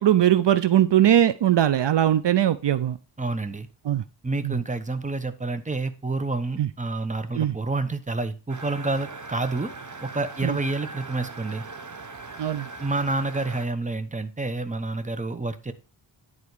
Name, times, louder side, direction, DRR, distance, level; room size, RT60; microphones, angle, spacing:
voice 1, 0.0-3.0 3.9-4.0 4.4-4.6 6.6-6.7 7.4-7.5 10.4-10.6 12.4-12.7, right 11 dB, 65° right, 0.6 m, -20 dB
voice 2, 3.2-3.7 4.2-9.7 10.0-11.6 12.8-15.7, right 3 dB, 15° right, 1.0 m, -28 dB
sound 1, 8.5-13.7, right 3 dB, 40° right, 1.2 m, -40 dB
10.5 x 4.2 x 4.8 m
wide cardioid pair, 90°, 46 cm